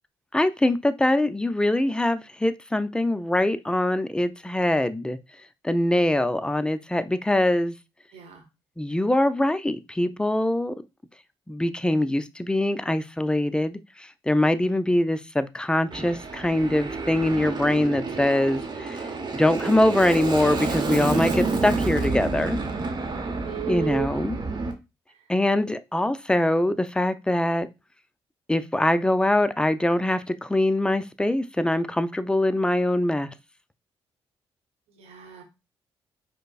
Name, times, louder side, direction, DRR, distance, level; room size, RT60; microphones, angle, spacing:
voice 1, 0.3-5.2 5.6-7.7 8.8-10.7 11.5-13.8 14.3-19.0 19.3-22.6 23.7-24.4 25.3-27.7 28.5-33.3, left 1 dB, 10° left, 0.4 m, -23 dB
voice 2, 8.1-8.4 23.4-24.2 34.9-35.4, right 8 dB, 75° right, 0.9 m, -34 dB
Aircraft, 15.9-24.7, right 3 dB, 45° right, 0.7 m, -29 dB
4.9 x 2.0 x 2.3 m
supercardioid pair, 60°, 10 cm